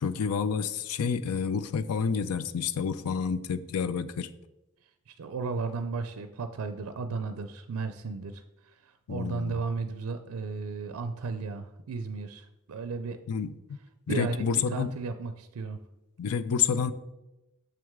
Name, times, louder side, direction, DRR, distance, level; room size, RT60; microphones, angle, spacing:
voice 1, 0.0-4.3 9.1-9.5 13.3-13.5 14.1-14.9 16.2-16.9, left 6 dB, 85° left, 14 dB, 0.4 m, -29 dB
voice 2, 5.1-13.2 14.1-15.8, right 4 dB, 75° right, 9 dB, 0.4 m, -35 dB
6.9 x 6.1 x 3.6 m, 0.98 s
head